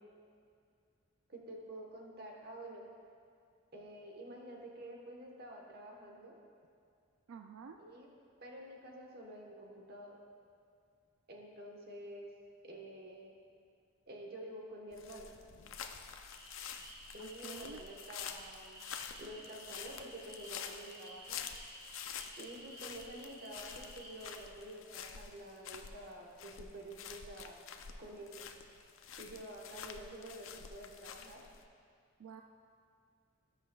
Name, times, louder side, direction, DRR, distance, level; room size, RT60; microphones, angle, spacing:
voice 1, 1.3-2.9 3.7-6.3 7.8-8.1 8.4-10.1 11.3-12.3 12.6-13.3 14.1-15.4 17.1-18.9 19.2-21.4 22.3-27.6 28.0-28.5 29.2-31.4, right 1 dB, 50° right, 0 dB, 1.2 m, -49 dB
voice 2, 7.3-7.8 17.2-17.8 32.2-32.4, right 6 dB, 85° right, 5 dB, 0.4 m, -49 dB
sound 1, 14.9-31.6, left 7 dB, 70° left, 0.5 m, -48 dB
sound 2, 16.3-24.3, right 1 dB, 20° right, 1.4 m, -54 dB
18.0 x 6.4 x 2.3 m, 2.4 s
head